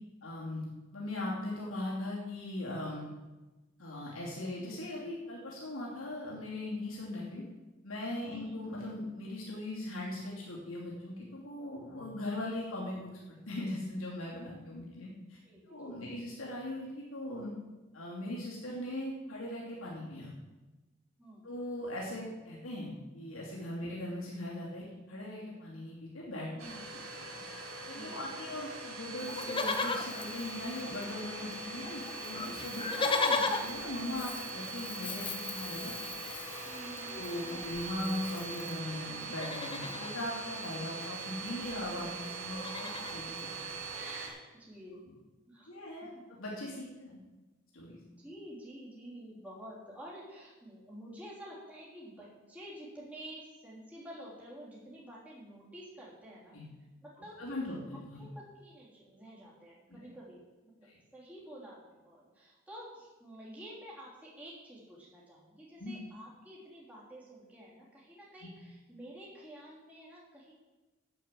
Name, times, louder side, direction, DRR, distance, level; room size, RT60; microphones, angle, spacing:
voice 1, 0.2-0.6 0.9-3.0 3.8-7.4 7.8-15.4 15.7-17.5 17.9-20.3 21.4-26.5 27.8-35.9 37.1-43.5 45.7-46.1 46.4-47.2 47.7-48.0 56.5-56.7 57.4-58.2 60.0-60.1 60.8-61.0 65.8-65.9 68.4-68.5, left 1 dB, 85° left, -5 dB, 2.8 m, -39 dB
voice 2, 8.3-8.6 14.5-14.8 15.4-16.3 21.2-21.5 26.5-26.8 27.1-27.5 27.9-28.3 32.8-33.0 36.6-37.2 43.9-45.0 45.5-45.7 48.2-56.6 57.0-57.5 58.2-70.5, right 1 dB, 5° right, -7 dB, 3.1 m, -50 dB
Domestic sounds home sounds, 26.6-44.3, right 3 dB, 90° right, 2.3 m, -42 dB
Livestock farm animals working animals, 29.2-31.3 31.5-31.6 31.8-38.8 39.2-40.1 41.4-41.5 41.6-41.9 42.3-43.2 43.8-43.9, left 3 dB, 25° left, 0.8 m, -37 dB
9.3 x 7.9 x 7.6 m, 1.2 s
head